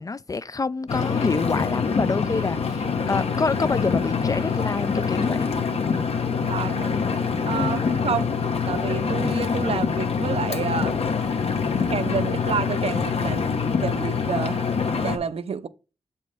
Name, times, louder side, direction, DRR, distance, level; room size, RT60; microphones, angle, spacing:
voice 1, 0.0-5.4 7.5-7.8, left 4 dB, 35° left, 0.4 m, -27 dB
Engine, 0.9-15.2, left 5 dB, 70° left, 1.0 m, -25 dB
voice 2, 6.2-7.0 7.5-8.3 8.7-11.0 11.7-14.7 15.0-15.7, right 6 dB, 65° right, 0.6 m, -29 dB
7.4 x 4.2 x 3.5 m
cardioid pair, 60°, 11 cm